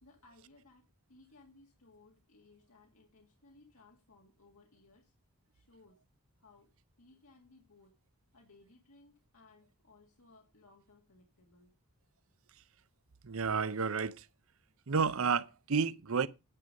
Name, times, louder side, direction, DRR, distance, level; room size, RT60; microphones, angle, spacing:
voice 1, 0.0-5.1 5.5-6.0 6.4-6.7 7.0-7.9 8.3-11.8, left 3 dB, 80° left, 1.9 m, -62 dB
voice 2, 13.2-14.3 14.9-16.3, right 5 dB, 65° right, 0.7 m, -31 dB
10.0 x 5.5 x 6.4 m
head